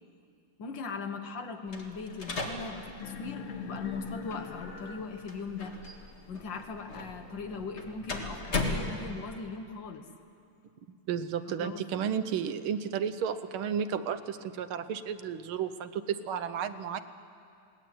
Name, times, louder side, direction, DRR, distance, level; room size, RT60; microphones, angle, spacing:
voice 1, 0.6-5.8 6.3-10.1 11.5-11.8, left 4 dB, 60° left, 5 dB, 2.0 m, -39 dB
sound 1, 1.7-9.5, left 2 dB, 30° left, 2.0 m, -38 dB
sound 2, 3.0-8.0, left 5 dB, 85° left, 2.4 m, -43 dB
voice 2, 11.1-17.0, right 7 dB, 75° right, 11 dB, 1.7 m, -33 dB
21.0 x 17.5 x 9.5 m, 2.5 s
omnidirectional pair, 2.4 m